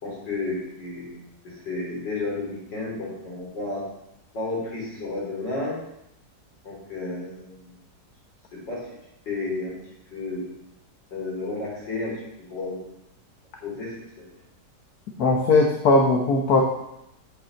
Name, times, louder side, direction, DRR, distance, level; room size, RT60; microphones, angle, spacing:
voice 1, 0.0-1.2 1.4-3.8 4.3-5.8 6.6-7.7 8.5-8.8 9.3-9.8 10.1-10.4 11.1-12.1 12.5-12.8 13.6-14.3, left 3 dB, 80° left, -4 dB, 4.3 m, -32 dB
voice 2, 15.2-16.6, left 3 dB, 60° left, 1 dB, 1.5 m, -19 dB
7.2 x 6.4 x 7.7 m, 0.84 s
omnidirectional pair, 1.9 m